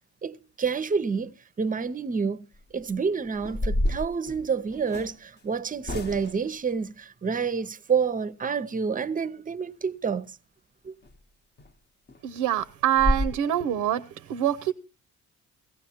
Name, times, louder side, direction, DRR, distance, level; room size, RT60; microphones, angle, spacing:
voice 1, 0.2-2.5 2.7-10.4 10.8-10.9, right 5 dB, 25° right, 0.6 m, -28 dB
sound 1, 2.5-2.8 3.4-5.1 5.8-6.5 11.0-11.2 11.6-11.7 12.1-12.2 12.6-12.7 13.0-13.3, left 1 dB, 35° left, 0.8 m, -28 dB
voice 2, 12.2-14.0 14.3-14.7, right 11 dB, 90° right, 0.6 m, -25 dB
17.0 x 15.5 x 2.8 m
cardioid pair, 90°, 30 cm